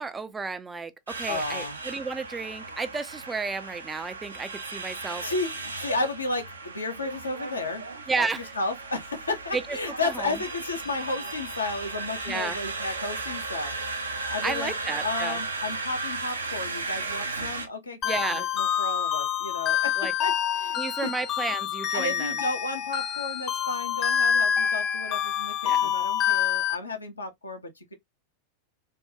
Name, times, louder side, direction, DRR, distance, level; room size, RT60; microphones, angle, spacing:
voice 1, 0.0-5.2 8.1-8.5 9.5-9.8 10.0-10.4 12.3-12.6 14.4-15.4 18.1-18.4 20.0-20.1 20.8-22.3 25.6-25.9, right 4 dB, 15° right, 0.4 m, -32 dB
sound 1, 1.1-17.7, right 3 dB, 75° right, 0.6 m, -35 dB
voice 2, 1.3-1.8 5.2-7.8 8.2-14.7 15.0-19.9 20.2-21.1 21.9-27.9, left 3 dB, 75° left, 0.8 m, -33 dB
sound 2, 18.0-26.8, left 9 dB, 35° left, 0.7 m, -27 dB
3.4 x 2.2 x 2.7 m
figure-of-eight pair, 90°, 0 cm